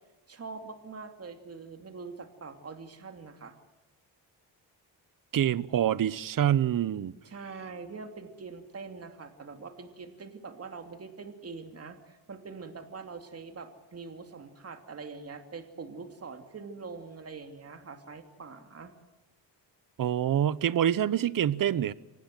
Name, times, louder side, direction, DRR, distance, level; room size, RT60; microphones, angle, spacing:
voice 1, 0.3-3.5 7.2-18.9, right 4 dB, 35° right, 2.8 m, -44 dB
voice 2, 5.3-7.1 20.0-21.9, right 10 dB, 50° right, 0.9 m, -26 dB
25.5 x 19.5 x 7.7 m
cardioid pair, 115°, 41 cm